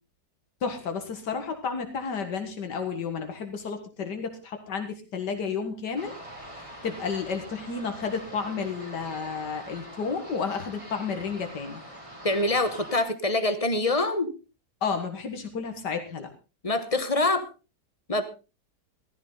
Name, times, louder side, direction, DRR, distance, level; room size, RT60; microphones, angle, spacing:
voice 1, 0.6-6.1 6.5-11.8 14.8-16.3, left 5 dB, 90° left, 6 dB, 2.3 m, -32 dB
sound 1, 6.0-13.0, right 1 dB, 20° right, 3.7 m, -44 dB
voice 2, 12.2-14.3 16.6-17.5 18.1-18.2, left 2 dB, 25° left, 11 dB, 1.2 m, -25 dB
15.0 x 14.5 x 3.9 m, 0.31 s
omnidirectional pair, 1.8 m